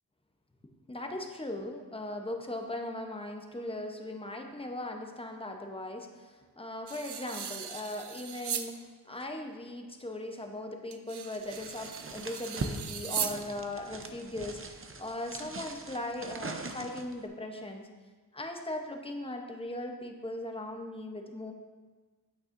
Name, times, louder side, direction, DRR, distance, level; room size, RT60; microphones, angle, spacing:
voice 1, 0.9-17.9 18.3-21.5, left 1 dB, 15° left, 3 dB, 0.8 m, -39 dB
sound 1, 6.9-8.7 9.2-9.3 10.9-13.4, right 8 dB, 80° right, 0.5 m, -38 dB
sound 2, 11.5-17.2, right 3 dB, 35° right, 0.6 m, -41 dB
9.0 x 8.5 x 2.6 m, 1.4 s
wide cardioid pair, 95°, 39 cm